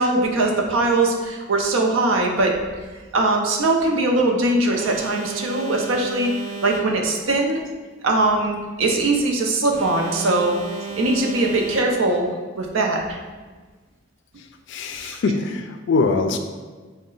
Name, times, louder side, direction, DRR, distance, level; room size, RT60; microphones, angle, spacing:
voice 1, 0.0-2.5 3.1-6.3 6.6-7.6 8.0-10.5 10.8-12.3 12.6-13.2 15.0-15.2, right 2 dB, 85° right, 1 dB, 0.6 m, -21 dB
Alarm, 4.7-7.3 9.7-12.3, right 5 dB, 35° right, 0.4 m, -34 dB
voice 2, 14.7-16.4, left 3 dB, 60° left, 6 dB, 0.3 m, -22 dB
3.9 x 2.1 x 3.8 m, 1.4 s
head